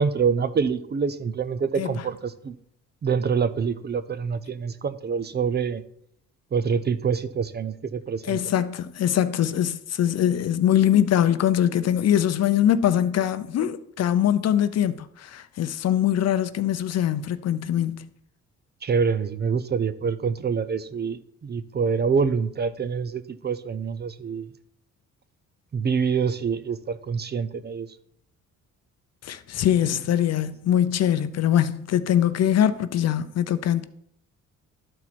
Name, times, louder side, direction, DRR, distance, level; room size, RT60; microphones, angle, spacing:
voice 1, 0.0-2.6 3.0-5.8 6.5-8.4 18.8-24.5 25.7-27.9, right 6 dB, 35° right, 0.6 m, -26 dB
voice 2, 8.3-18.1 29.2-33.8, left 10 dB, 55° left, 0.6 m, -22 dB
12.5 x 4.4 x 4.2 m
cardioid pair, 90°, 30 cm